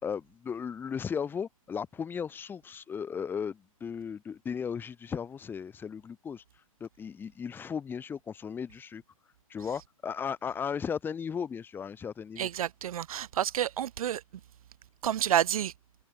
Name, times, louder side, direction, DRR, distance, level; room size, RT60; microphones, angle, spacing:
voice 1, 0.0-6.4 6.8-9.0 9.5-12.5, left 7 dB, 10° left, 1.6 m, -36 dB
voice 2, 12.4-14.2 15.0-15.7, right 10 dB, 75° right, 0.4 m, -29 dB
hypercardioid pair, 145°, 18 cm